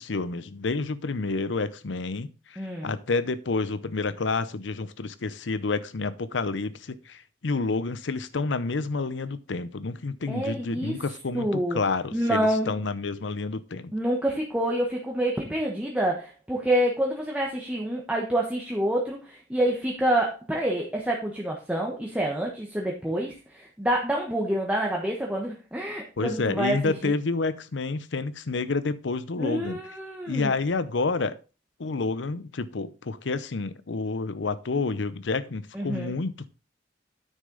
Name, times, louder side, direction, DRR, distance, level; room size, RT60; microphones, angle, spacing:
voice 1, 0.0-13.9 26.2-29.8 30.3-31.4 31.8-36.5, left 3 dB, 80° left, 0.7 m, -29 dB
voice 2, 2.6-2.9 10.3-11.0 11.3-11.8 12.1-12.8 13.9-27.2 29.4-30.5 35.7-36.1, right 1 dB, 10° right, 1.2 m, -27 dB
9.2 x 6.5 x 3.9 m
head